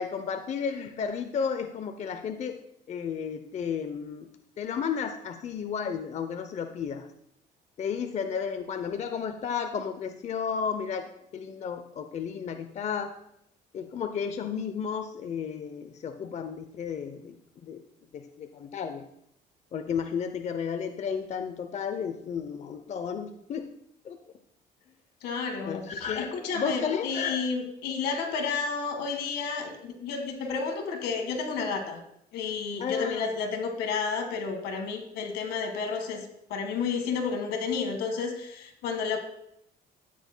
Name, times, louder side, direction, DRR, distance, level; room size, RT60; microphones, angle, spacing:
voice 1, 0.0-2.6 2.9-4.3 4.6-7.1 7.8-13.1 13.7-17.4 17.6-17.8 18.1-19.1 19.7-23.7 24.0-24.2 25.6-27.5 32.8-33.2, left 6 dB, 40° left, 8 dB, 0.6 m, -33 dB
voice 2, 25.2-25.8 26.2-32.0 32.3-39.2, left 5 dB, 80° left, 4 dB, 1.8 m, -31 dB
13.0 x 9.0 x 2.2 m, 0.75 s
cardioid pair, 110°, 17 cm